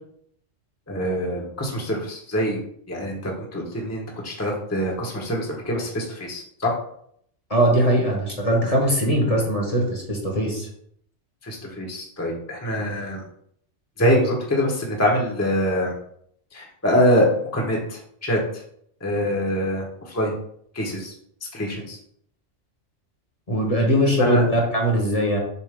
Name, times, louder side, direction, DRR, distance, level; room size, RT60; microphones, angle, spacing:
voice 1, 0.9-2.6 2.9-6.7 11.4-13.2 14.0-15.9 16.5-18.6 19.0-20.3 20.7-21.1 21.5-22.0 24.2-24.4, equal, 15° left, -1 dB, 1.1 m, -24 dB
voice 2, 7.5-10.7 23.5-25.4, right 1 dB, 30° left, 0 dB, 1.3 m, -21 dB
6.9 x 2.7 x 5.1 m, 0.66 s
omnidirectional pair, 1.2 m